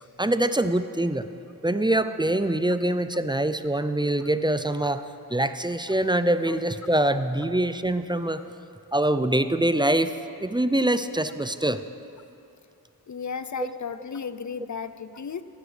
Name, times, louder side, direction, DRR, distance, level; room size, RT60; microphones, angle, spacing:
voice 1, 0.2-1.3 1.6-5.0 5.3-8.4 8.9-10.1 10.4-11.8 13.6-13.7, right 1 dB, 15° right, 11 dB, 0.4 m, -24 dB
voice 2, 13.1-15.4, left 6 dB, 50° left, 13 dB, 0.5 m, -34 dB
15.5 x 11.5 x 3.3 m, 2.7 s
wide cardioid pair, 45°, 38 cm